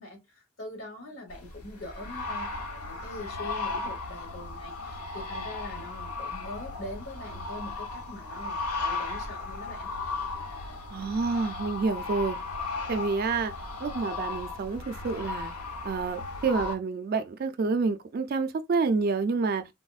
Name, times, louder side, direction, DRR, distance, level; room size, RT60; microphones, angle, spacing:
voice 1, 0.0-9.9, left 2 dB, 60° left, 1.3 m, -43 dB
sound 1, 1.3-16.8, left 3 dB, 85° left, 0.7 m, -36 dB
voice 2, 10.9-12.4 12.9-13.5 13.8-15.5 15.8-19.7, right 4 dB, 40° right, 0.3 m, -28 dB
4.0 x 2.1 x 2.3 m
head